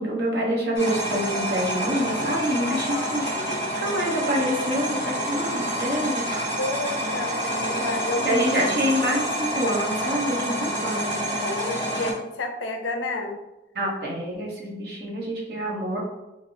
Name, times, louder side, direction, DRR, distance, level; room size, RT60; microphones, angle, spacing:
voice 1, 0.0-6.2 8.2-11.1 13.7-16.0, equal, 60° right, -3 dB, 0.9 m, -26 dB
sound 1, 0.7-12.1, right 1 dB, 35° right, 1.2 m, -28 dB
voice 2, 2.6-3.3 6.6-8.4 11.4-13.4, left 2 dB, 90° left, 5 dB, 0.5 m, -31 dB
3.3 x 2.6 x 2.5 m, 1.0 s
head